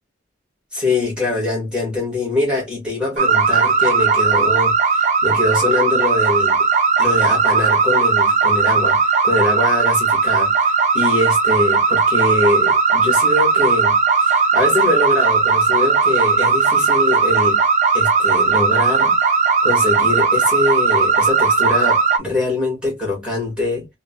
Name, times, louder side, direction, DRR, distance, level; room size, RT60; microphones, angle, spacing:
voice 1, 0.7-6.6 7.0-17.6 17.9-19.3 19.6-23.9, left 2 dB, 5° right, 1.6 m, -23 dB
sound 1, 3.2-22.2, right 5 dB, 40° right, 0.3 m, -17 dB
3.6 x 2.2 x 2.3 m
head